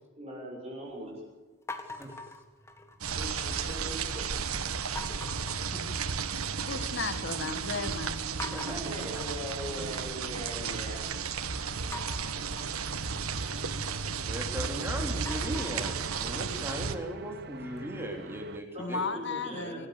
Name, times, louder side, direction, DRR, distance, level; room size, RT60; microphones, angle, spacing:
voice 1, 0.2-1.2 3.1-4.2 8.7-11.0 18.4-19.8, equal, 30° right, -4 dB, 7.3 m, -41 dB
sound 1, 1.7-3.2 3.5-4.1 5.0-6.5 6.8-7.4 7.7-7.8 8.4-10.5 11.9-14.7 15.1-18.0, left 2 dB, 15° left, 1.8 m, -45 dB
sound 2, 3.0-17.0, right 5 dB, 85° right, 1.4 m, -34 dB
voice 2, 6.6-8.3 18.8-19.9, left 4 dB, 55° left, 10 dB, 1.8 m, -35 dB
voice 3, 8.5-8.8 14.3-19.9, equal, 10° right, 2 dB, 3.2 m, -38 dB
sound 3, 11.5-18.6, right 2 dB, 50° right, 1.0 m, -46 dB
26.5 x 15.0 x 8.6 m, 1.2 s
head